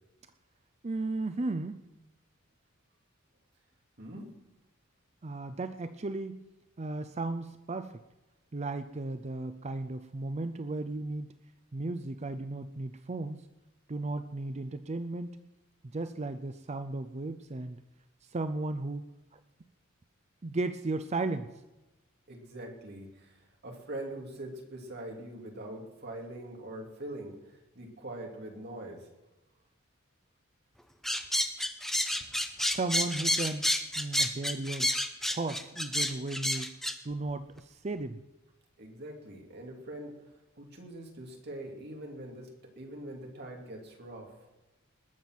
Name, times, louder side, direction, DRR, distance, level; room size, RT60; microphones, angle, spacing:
voice 1, 0.8-1.8 5.2-6.5 6.8-8.0 8.5-11.3 11.7-13.4 13.9-15.3 15.9-17.8 18.3-19.0 19.3-19.4 20.4-21.5 32.6-33.7 34.0-34.9 35.3-36.7 37.0-38.2, right 2 dB, 30° right, 10 dB, 0.5 m, -35 dB
voice 2, 4.0-4.3 22.3-29.1 38.8-40.3 40.6-44.3, right 1 dB, 50° right, 1 dB, 2.7 m, -43 dB
sound 1, 31.0-36.9, left 1 dB, ahead, 0.8 m, -29 dB
20.0 x 7.3 x 6.0 m, 1.0 s
head